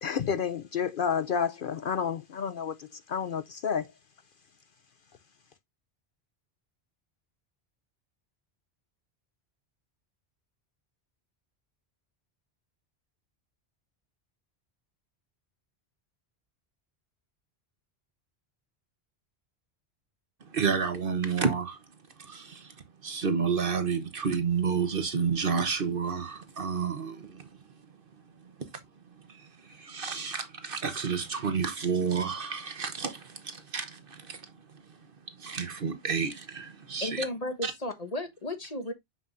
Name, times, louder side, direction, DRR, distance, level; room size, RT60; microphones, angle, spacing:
voice 1, 0.0-3.9, left 7 dB, 60° left, 0.7 m, -30 dB
voice 2, 20.5-21.8 22.2-22.7 23.0-27.5 29.3-34.5 35.4-37.2 37.6-37.7, right 5 dB, 55° right, 1.2 m, -30 dB
voice 3, 37.0-38.9, left 1 dB, 35° left, 1.4 m, -34 dB
6.7 x 6.1 x 2.5 m
omnidirectional pair, 1.1 m